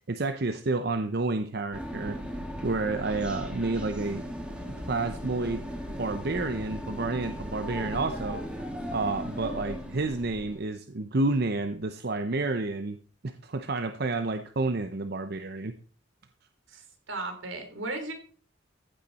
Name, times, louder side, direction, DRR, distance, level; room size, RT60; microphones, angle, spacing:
voice 1, 0.1-2.2 2.6-4.2 4.8-5.6 6.0-8.4 8.9-13.0 13.2-15.7, right 3 dB, 55° right, 9 dB, 0.7 m, -30 dB
sound 1, 1.7-10.7, equal, 5° right, 2.0 m, -37 dB
voice 2, 16.7-18.1, right 2 dB, 80° right, 5 dB, 3.6 m, -36 dB
15.0 x 8.7 x 4.2 m, 0.42 s
head